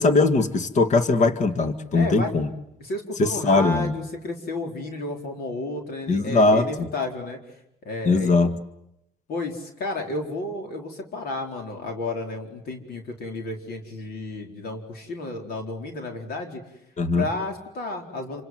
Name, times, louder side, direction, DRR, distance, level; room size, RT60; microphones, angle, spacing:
voice 1, 0.0-2.5 3.2-3.9 6.1-6.9 8.1-8.5 17.0-17.2, left 3 dB, 45° left, 9 dB, 2.1 m, -20 dB
voice 2, 1.9-2.3 2.8-7.4 7.8-8.3 9.3-16.6 17.1-18.4, left 2 dB, 65° left, 3 dB, 4.4 m, -32 dB
27.5 x 26.0 x 7.9 m, 0.81 s
cardioid pair, 110°, 17 cm